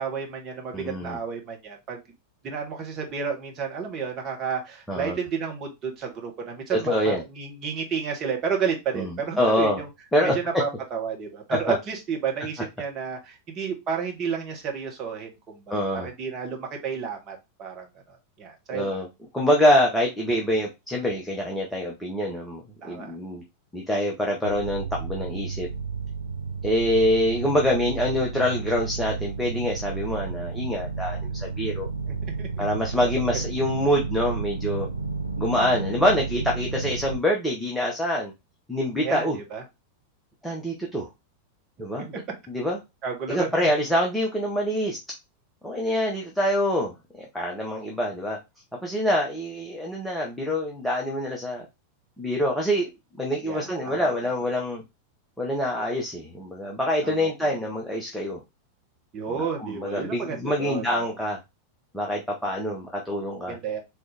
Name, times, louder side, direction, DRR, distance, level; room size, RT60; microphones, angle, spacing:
voice 1, 0.0-2.0 2.4-9.9 10.2-19.0 22.8-23.2 32.1-32.6 33.1-33.4 39.0-39.6 43.0-43.7 53.4-54.3 57.0-57.5 59.1-61.1 63.5-63.8, right 6 dB, 30° right, 1.4 m, -32 dB
voice 2, 0.7-1.2 4.9-5.2 6.7-7.2 9.0-9.1 9.4-9.8 10.1-10.4 11.5-11.8 15.7-16.1 18.7-19.1 19.3-23.4 23.7-25.7 26.6-31.9 32.6-34.9 35.4-38.3 38.7-39.4 40.4-41.1 41.8-42.1 42.5-42.8 43.3-45.0 45.6-48.4 48.8-51.6 52.2-52.9 53.2-54.8 55.4-58.4 59.6-61.4 61.9-63.6, equal, 5° left, 0.9 m, -25 dB
sound 1, 24.4-37.2, right 4 dB, 90° right, 0.4 m, -32 dB
3.9 x 3.1 x 3.3 m
figure-of-eight pair, 90°, 0 cm